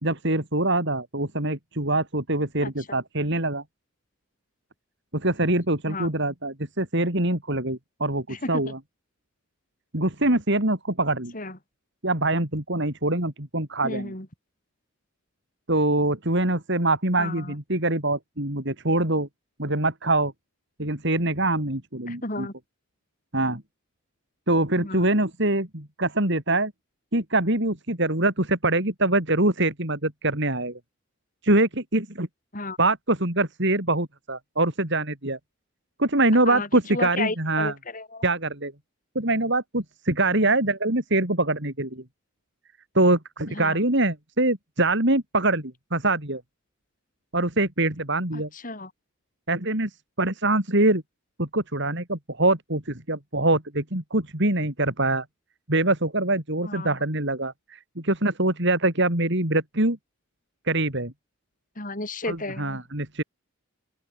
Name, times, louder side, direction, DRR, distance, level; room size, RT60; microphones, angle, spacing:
voice 1, 0.0-3.6 5.1-8.8 9.9-11.3 12.0-14.1 15.7-19.3 19.6-20.3 20.8-22.5 23.3-23.6 24.5-26.7 27.1-30.8 31.4-32.3 32.8-35.4 36.0-37.7 38.2-38.7 39.1-42.0 42.9-46.4 47.3-48.5 49.5-51.0 51.4-55.2 55.7-60.0 60.7-61.1 62.3-63.2, right 2 dB, 55° right, 4.5 m, -24 dB
voice 2, 2.6-3.0 5.9-6.1 8.3-8.7 11.3-11.6 13.8-14.3 17.2-17.6 22.1-22.5 24.8-25.0 32.5-32.8 36.5-38.2 40.4-40.5 43.5-43.8 48.3-48.9 56.6-56.9 61.8-62.8, left 2 dB, 40° left, 5.5 m, -33 dB
open air
head